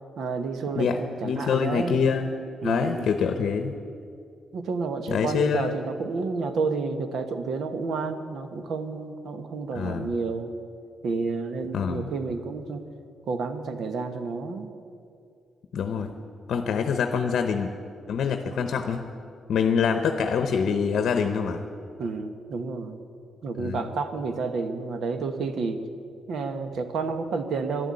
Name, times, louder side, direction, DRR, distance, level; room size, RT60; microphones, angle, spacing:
voice 1, 0.2-2.0 2.6-3.1 4.5-10.5 11.0-12.8 13.3-14.7 22.0-23.0 23.4-25.8 26.3-27.9, right 4 dB, 65° right, 9 dB, 1.2 m, -30 dB
voice 2, 0.8-2.3 2.6-3.7 5.1-5.7 9.7-10.1 11.7-12.1 15.7-16.1 16.5-17.7 18.1-19.0 19.5-21.7 23.6-23.9, left 6 dB, 65° left, 7 dB, 0.8 m, -25 dB
12.0 x 11.5 x 9.8 m, 2.4 s
cardioid pair, 140°, 0 cm